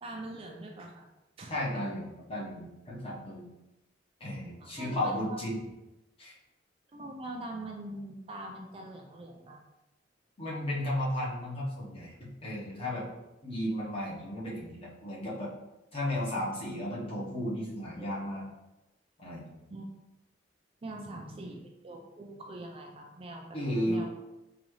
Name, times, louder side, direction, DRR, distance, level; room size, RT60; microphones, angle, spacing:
voice 1, 0.0-1.1 1.4-1.6 4.6-5.4 6.9-9.6 19.7-19.9 20.8-23.6 23.9-24.1, right 1 dB, 30° right, 1 dB, 0.3 m, -43 dB
voice 2, 1.5-3.4 4.2-5.6 6.2-6.4 10.4-13.0 13.4-15.5 15.9-18.5 19.2-19.5 20.9-21.1 23.5-24.1, left 1 dB, 30° left, -6 dB, 0.9 m, -34 dB
3.9 x 2.3 x 3.1 m, 0.98 s
head